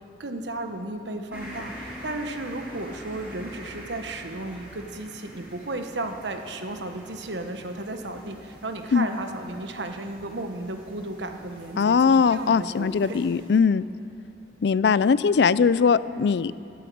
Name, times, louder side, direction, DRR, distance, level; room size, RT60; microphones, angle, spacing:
voice 1, 0.2-13.2, right 2 dB, 90° right, 6 dB, 1.1 m, -34 dB
sound 1, 1.3-13.6, equal, 10° right, 3.8 m, -45 dB
voice 2, 11.8-13.8 14.6-16.6, left 5 dB, 70° left, 17 dB, 0.4 m, -20 dB
13.0 x 11.5 x 7.7 m, 2.7 s
head